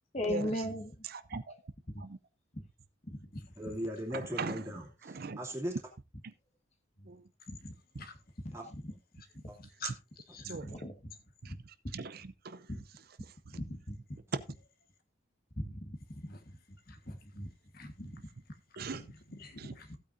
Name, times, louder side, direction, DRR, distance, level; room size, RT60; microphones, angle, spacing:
voice 1, 0.1-1.0 1.9-2.0 2.5-2.6 3.0-3.3 3.6-3.8 7.0-7.1 7.5-8.1 8.4-8.9 9.4-9.5 10.6-11.1 11.4-11.6 12.7-12.8 13.5-14.2 15.6-16.6 16.9-17.5 17.8-18.1, left 1 dB, 35° left, 1.6 m, -39 dB
voice 2, 1.1-1.4 2.0-2.2 4.1-4.7 5.0-5.4 7.1-7.2 10.4-10.7 11.4-11.6 11.9-12.7 14.3-14.4 18.8-19.0 19.6-19.7, right 4 dB, 50° right, 0.6 m, -39 dB
voice 3, 3.6-5.8 8.5-8.7 9.5-9.6, equal, 15° right, 2.8 m, -38 dB
voice 4, 9.6-10.6 16.3-16.4 16.9-17.2 17.7-17.9 18.8-19.9, left 4 dB, 50° left, 1.6 m, -48 dB
15.5 x 8.6 x 2.6 m
head